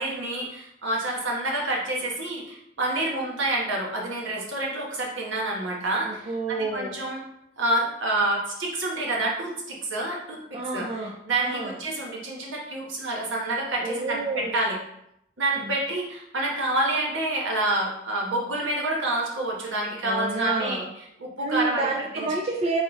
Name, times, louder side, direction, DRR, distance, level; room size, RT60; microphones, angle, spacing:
voice 1, 0.0-7.2 7.6-10.8 11.3-14.8 15.4-20.8 21.2-21.8 22.1-22.3, right 2 dB, 70° right, -2 dB, 1.2 m, -28 dB
voice 2, 3.0-3.3 6.0-7.0 10.5-11.1 11.4-11.8 13.8-14.6 15.6-15.7 20.0-20.9 21.4-22.8, right 3 dB, 30° right, -1 dB, 0.4 m, -29 dB
3.6 x 3.1 x 4.0 m, 0.78 s
head